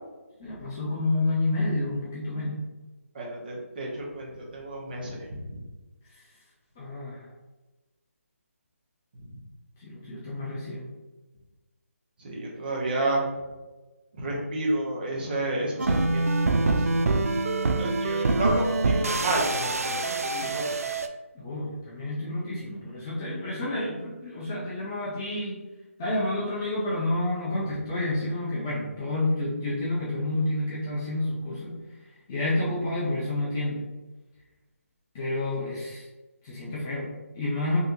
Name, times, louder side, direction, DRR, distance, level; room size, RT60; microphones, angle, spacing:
voice 1, 0.4-2.6 6.8-7.3 9.8-10.9 21.3-25.6 26.0-31.7 32.3-33.9 35.1-36.1 36.4-37.8, left 2 dB, 15° left, -7 dB, 0.3 m, -29 dB
voice 2, 3.1-5.6 9.2-9.3 12.2-13.2 14.2-17.3 17.8-20.6, right 1 dB, 40° right, -3 dB, 0.8 m, -31 dB
sound 1, 15.8-21.1, right 2 dB, 80° right, 0.3 m, -25 dB
3.2 x 2.7 x 2.9 m, 1.1 s
figure-of-eight pair, 165°, 8 cm